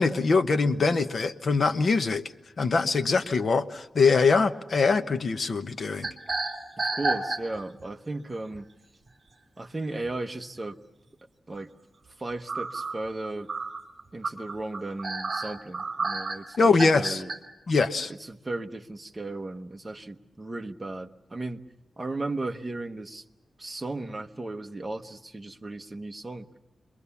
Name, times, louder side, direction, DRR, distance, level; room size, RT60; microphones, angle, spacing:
voice 1, 0.0-2.2 2.6-6.1 16.6-17.2 17.7-18.1, left 4 dB, 50° left, 9 dB, 1.0 m, -23 dB
sound 1, 6.0-7.8 8.3-8.6 10.1-10.2 10.6-10.7 12.5-17.4, right 3 dB, 40° right, 2.8 m, -30 dB
voice 2, 6.8-8.7 9.6-10.8 11.5-11.7 12.2-13.5 14.1-17.3 18.2-21.6 22.0-23.2 23.6-26.5, right 2 dB, 15° right, 5 dB, 1.0 m, -35 dB
28.5 x 22.5 x 7.0 m, 0.97 s
wide cardioid pair, 155°, 0 cm